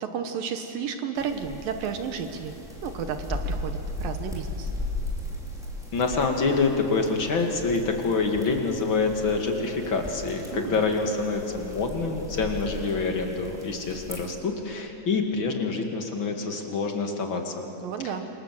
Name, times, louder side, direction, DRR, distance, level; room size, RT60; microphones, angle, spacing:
voice 1, 0.0-2.6 2.8-4.7 10.5-10.8 17.8-18.3, right 7 dB, 70° right, 7 dB, 2.3 m, -32 dB
sound 1, 1.2-14.2, left 1 dB, ahead, 3.3 m, -37 dB
voice 2, 5.9-17.6 18.0-18.1, left 4 dB, 40° left, 3 dB, 1.8 m, -26 dB
27.5 x 27.0 x 7.7 m, 2.9 s
omnidirectional pair, 5.2 m